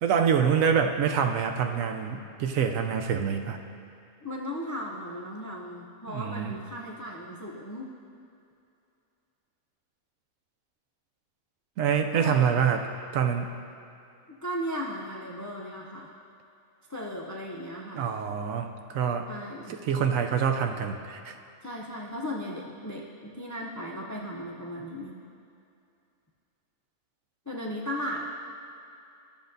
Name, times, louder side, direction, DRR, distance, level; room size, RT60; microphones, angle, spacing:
voice 1, 0.0-3.6 6.1-6.6 11.8-12.8 13.1-13.5 17.9-19.2 19.7-21.3, right 7 dB, 85° right, 5 dB, 1.0 m, -26 dB
voice 2, 4.2-7.9 12.1-12.7 14.4-16.1 16.9-18.1 19.3-19.8 21.6-25.1 27.5-28.3, equal, 30° left, -2 dB, 0.3 m, -36 dB
13.0 x 7.0 x 2.6 m, 2.6 s
omnidirectional pair, 1.4 m